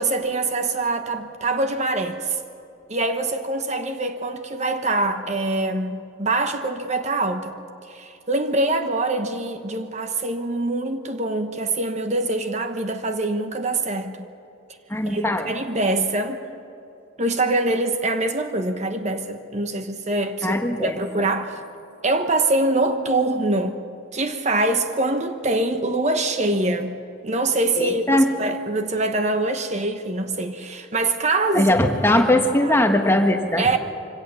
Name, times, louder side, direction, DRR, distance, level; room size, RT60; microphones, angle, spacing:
voice 1, 0.0-2.4 2.9-14.2 15.0-16.4 17.2-21.6 22.0-23.8 24.1-31.7 32.1-32.8 33.6-33.8, right 2 dB, 35° right, 1.0 m, -24 dB
voice 2, 14.9-15.5 20.4-21.3 27.8-28.3 31.5-33.8, left 1 dB, 10° left, 1.3 m, -20 dB
24.0 x 17.5 x 6.9 m
head